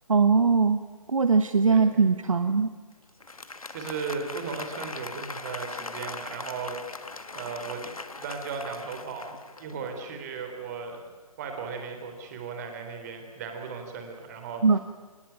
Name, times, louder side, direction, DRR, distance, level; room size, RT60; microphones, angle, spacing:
voice 1, 0.1-0.8 1.1-2.7 14.6-14.8, right 5 dB, 60° right, 10 dB, 1.2 m, -21 dB
voice 2, 1.7-2.0 3.7-7.8 8.2-11.0 11.4-14.8, right 5 dB, 25° right, 5 dB, 3.9 m, -36 dB
Applause, 3.1-10.1, left 3 dB, 70° left, 1.8 m, -40 dB
24.0 x 20.0 x 9.0 m, 1.4 s
figure-of-eight pair, 140°, 19 cm